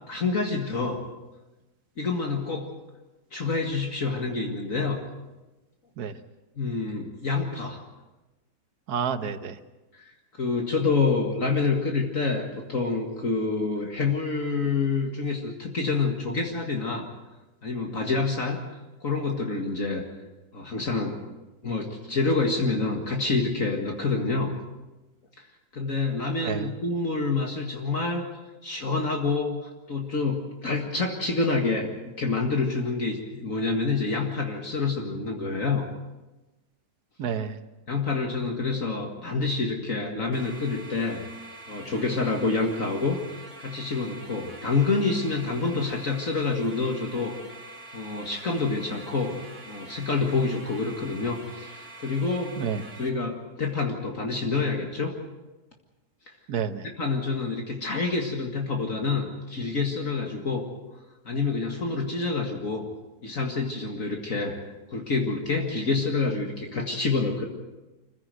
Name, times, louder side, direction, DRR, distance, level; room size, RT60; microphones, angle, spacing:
voice 1, 0.1-1.0 2.0-2.7 3.3-5.0 6.6-7.8 9.9-10.1 10.4-17.1 17.6-18.6 19.0-20.0 20.5-21.2 21.6-24.5 25.7-28.3 28.6-31.9 32.2-35.8 37.9-41.2 41.7-43.2 43.6-47.4 47.9-49.4 49.7-52.6 53.0-55.2 56.3-56.4 57.0-60.7 61.3-62.9 63.2-64.6 64.9-67.5, left 4 dB, 55° left, 1 dB, 2.3 m, -27 dB
voice 2, 8.9-9.6 26.4-26.7 37.2-37.6 52.6-52.8 56.5-56.9, right 7 dB, 70° right, 11 dB, 1.6 m, -29 dB
sound 1, 40.3-53.1, right 2 dB, 45° right, 3.2 m, -45 dB
25.5 x 16.0 x 7.9 m, 1.1 s
omnidirectional pair, 1.7 m